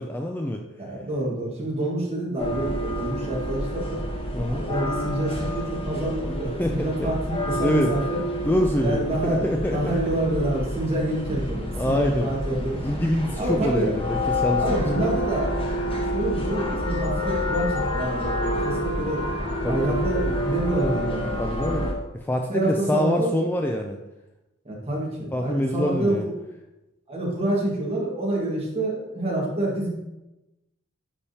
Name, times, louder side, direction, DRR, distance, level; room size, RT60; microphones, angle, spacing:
voice 1, 0.0-0.6 4.3-4.6 6.6-7.1 7.6-7.9 8.4-10.2 11.8-12.3 12.8-15.0 19.6-20.1 21.4-21.8 22.3-24.0 25.3-26.3, left 1 dB, 10° left, 2 dB, 0.3 m, -25 dB
voice 2, 0.8-4.0 4.5-8.2 8.5-12.8 13.4-14.0 14.6-19.3 19.6-21.9 22.5-23.4 24.6-26.3 27.1-29.9, right 1 dB, 30° right, -4 dB, 1.6 m, -27 dB
sound 1, 2.4-21.9, equal, 25° left, 1.0 m, -28 dB
9.8 x 3.5 x 2.8 m, 0.97 s
head